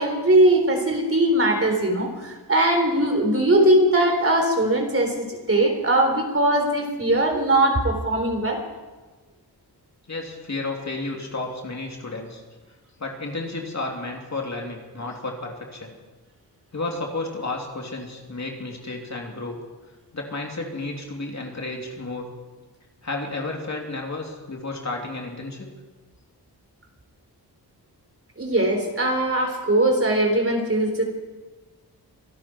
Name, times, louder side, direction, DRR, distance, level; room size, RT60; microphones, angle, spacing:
voice 1, 0.0-8.6 28.4-31.0, right 1 dB, 35° right, 3 dB, 3.8 m, -20 dB
voice 2, 10.1-12.4 13.0-15.9 16.7-19.6 20.1-22.3 23.0-25.7, left 2 dB, 45° left, 0 dB, 3.0 m, -32 dB
24.0 x 12.0 x 4.5 m, 1.3 s
cardioid pair, 65°, 40 cm